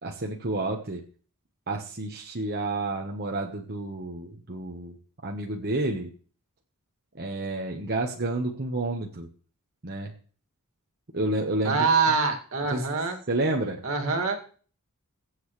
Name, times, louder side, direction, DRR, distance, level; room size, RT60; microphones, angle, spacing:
voice 1, 0.0-1.0 1.7-5.0 5.2-6.1 7.1-9.3 9.8-10.1 11.1-11.8 12.7-12.9 13.3-13.8, right 2 dB, 45° right, 1 dB, 1.2 m, -30 dB
voice 2, 11.6-13.2 13.8-14.6, right 4 dB, 70° right, 4 dB, 2.2 m, -25 dB
22.5 x 8.0 x 3.2 m, 0.43 s
head